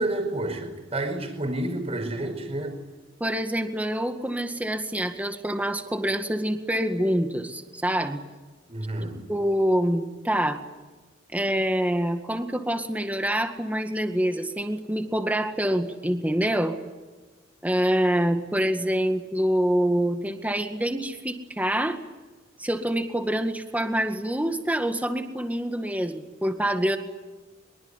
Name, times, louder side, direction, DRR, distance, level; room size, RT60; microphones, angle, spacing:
voice 1, 0.0-2.8 8.7-9.2, right 1 dB, 35° right, 7 dB, 5.0 m, -29 dB
voice 2, 3.2-8.2 9.3-10.6 11.3-16.8 17.6-22.0 22.6-27.0, equal, 10° right, 6 dB, 2.0 m, -26 dB
24.0 x 23.0 x 10.0 m, 1.2 s
head